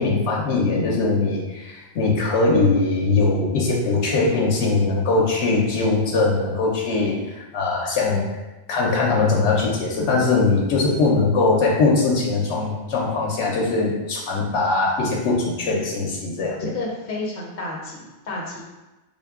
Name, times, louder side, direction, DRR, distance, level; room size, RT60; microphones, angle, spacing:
voice 1, 0.0-8.2 8.7-16.6, left 3 dB, 85° left, -2 dB, 0.9 m, -21 dB
voice 2, 16.6-18.6, left 2 dB, 55° left, -2 dB, 0.9 m, -30 dB
3.8 x 2.2 x 3.5 m, 1.1 s
omnidirectional pair, 1.1 m